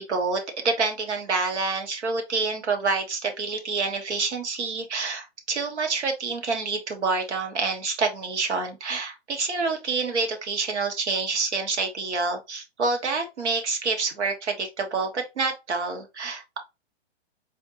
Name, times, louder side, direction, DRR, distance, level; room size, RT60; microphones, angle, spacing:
voice 1, 0.0-16.6, right 4 dB, 90° right, 1.5 m, -27 dB
4.2 x 2.8 x 2.8 m
hypercardioid pair, 160°, 33 cm